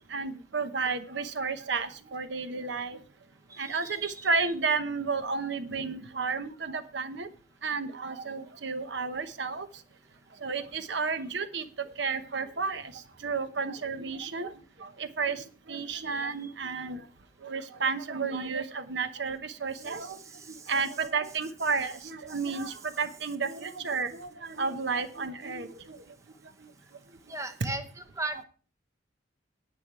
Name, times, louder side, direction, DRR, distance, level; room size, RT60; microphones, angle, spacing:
voice 1, 0.1-3.0 3.6-7.3 7.6-9.7 10.4-11.6 12.0-12.8 13.2-14.5 14.8-15.4 15.7-17.0 17.4-20.2 20.7-25.7, right 4 dB, 60° right, 11 dB, 1.0 m, -32 dB
voice 2, 3.5-4.3 16.0-16.5 19.7-20.7 22.3-22.7 27.3-28.4, right 2 dB, 15° right, 9 dB, 0.7 m, -40 dB
10.5 x 8.9 x 4.7 m, 0.40 s
head